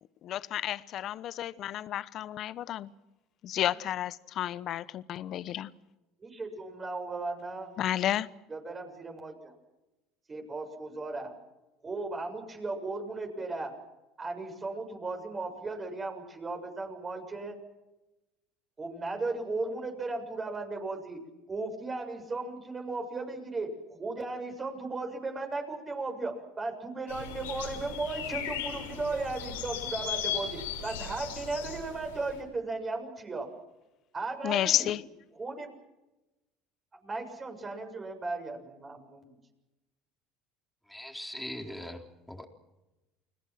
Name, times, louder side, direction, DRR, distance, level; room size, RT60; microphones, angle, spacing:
voice 1, 0.2-2.9 3.4-5.7 7.8-8.3 34.4-35.0, left 12 dB, 55° left, 1.0 m, -31 dB
voice 2, 6.2-7.7 8.5-9.5 10.3-11.3 11.8-13.7 14.2-17.6 18.8-21.2 21.5-33.5 34.1-34.9 35.3-35.7 37.0-39.4, right 3 dB, 30° right, 7.0 m, -36 dB
sound 1, 27.1-32.3, left 8 dB, 90° left, 5.7 m, -37 dB
voice 3, 40.9-42.4, left 1 dB, 5° left, 4.1 m, -41 dB
30.0 x 20.5 x 6.1 m
hypercardioid pair, 80°, 0 cm